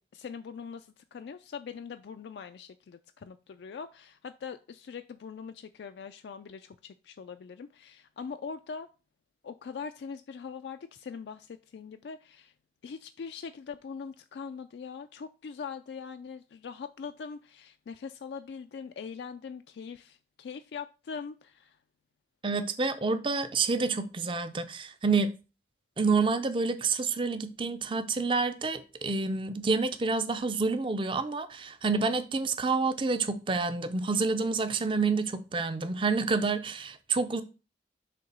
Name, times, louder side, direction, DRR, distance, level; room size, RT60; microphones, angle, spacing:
voice 1, 0.0-8.9 9.4-12.5 12.8-21.8, left 6 dB, 80° left, 0.3 m, -42 dB
voice 2, 22.4-25.3 26.0-37.4, right 4 dB, 30° right, 0.5 m, -28 dB
6.7 x 2.8 x 5.3 m
head